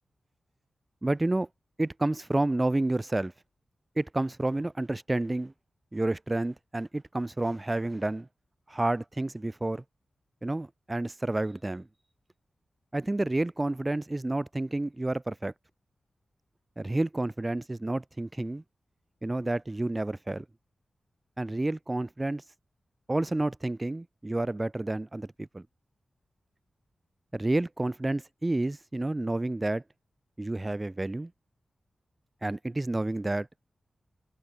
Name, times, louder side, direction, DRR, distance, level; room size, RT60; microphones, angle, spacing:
voice 1, 1.0-1.5 1.8-3.3 4.0-5.5 5.9-8.3 8.7-9.8 10.4-11.9 12.9-15.5 16.8-18.6 19.2-20.4 21.4-22.4 23.1-25.6 27.3-29.8 30.4-31.3 32.4-33.5, right 2 dB, 25° right, 2.2 m, -30 dB
cardioid pair, 50°, 0 cm